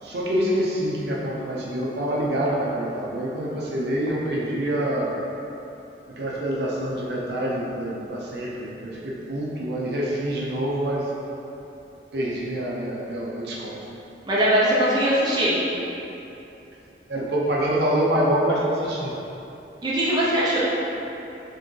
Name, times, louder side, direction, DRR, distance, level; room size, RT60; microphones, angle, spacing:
voice 1, 0.0-5.1 6.1-11.0 12.1-13.8 17.1-19.1, right 1 dB, 65° right, -5 dB, 0.7 m, -26 dB
voice 2, 14.3-15.6 19.8-20.6, right 1 dB, 20° right, -8 dB, 0.7 m, -21 dB
4.5 x 3.4 x 3.2 m, 2.9 s
head